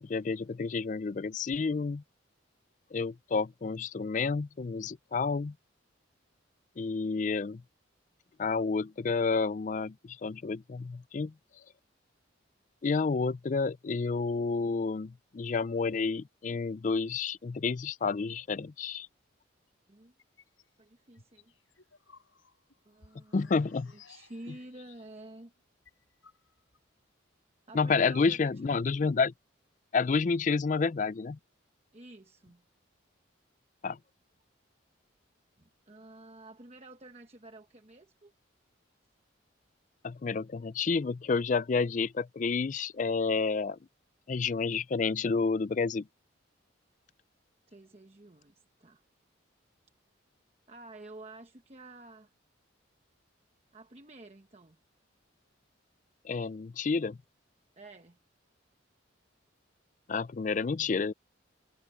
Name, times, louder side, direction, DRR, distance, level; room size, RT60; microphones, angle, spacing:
voice 1, 0.0-2.0 2.9-5.5 6.8-7.6 8.4-11.3 12.8-19.1 23.3-23.9 27.7-29.3 29.9-31.4 33.8-34.0 40.0-43.8 44.3-46.1 56.2-57.2 60.1-61.1, left 4 dB, 40° left, 0.4 m, -30 dB
sound 1, 20.2-20.8 21.2-25.3 25.6-25.7 25.9-26.8, left 6 dB, 80° left, 6.7 m, -59 dB
voice 2, 20.8-21.5 22.9-25.5 27.7-28.6 31.9-32.6 35.6-38.3 47.7-49.0 50.7-52.3 53.7-54.8 57.8-58.2, right 2 dB, 35° right, 1.0 m, -50 dB
head